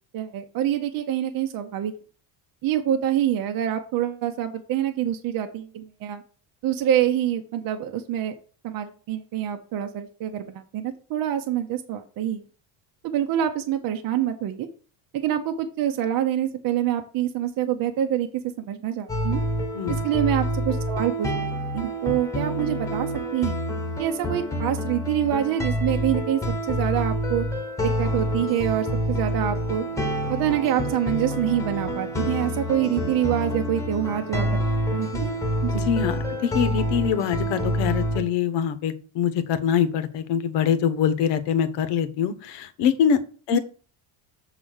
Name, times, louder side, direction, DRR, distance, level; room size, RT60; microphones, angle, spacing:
voice 1, 0.1-1.9 2.6-6.2 6.6-8.4 8.6-12.4 13.0-14.7 15.1-18.3 18.6-19.4 20.0-21.5 21.7-23.1 23.3-23.6 24.0-26.4 26.7-27.5 27.8-29.8 30.3-34.5 34.9-35.3 35.6-35.8 43.5-43.6, right 11 dB, 50° right, 6 dB, 0.8 m, -26 dB
sound 1, 19.1-38.2, equal, 5° left, 1.1 m, -27 dB
voice 2, 35.7-43.2 43.5-43.6, left 8 dB, 65° left, 12 dB, 1.1 m, -24 dB
7.2 x 4.1 x 6.4 m, 0.40 s
cardioid pair, 160°, 45 cm